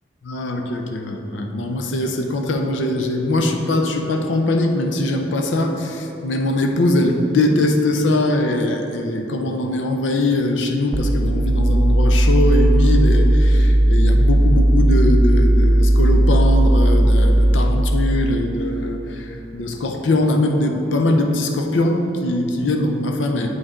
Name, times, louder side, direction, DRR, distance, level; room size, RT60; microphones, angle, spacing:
voice 1, 0.3-23.5, left 1 dB, 85° left, 3 dB, 0.6 m, -21 dB
sound 1, 10.9-17.7, right 1 dB, 20° right, 0.4 m, -15 dB
8.1 x 5.1 x 3.7 m, 2.9 s
head